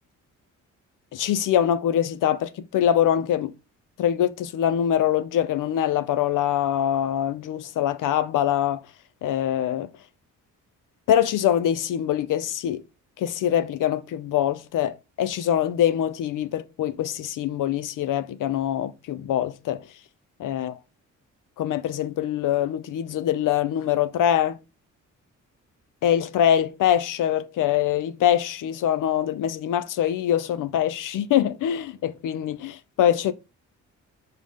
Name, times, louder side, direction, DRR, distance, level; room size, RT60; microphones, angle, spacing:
voice 1, 1.1-3.5 4.0-8.8 9.2-9.9 11.1-12.8 13.2-19.8 20.4-20.8 21.6-24.6 26.0-33.3, left 10 dB, 75° left, 0.8 m, -24 dB
5.3 x 3.9 x 5.6 m
cardioid pair, 85°, 32 cm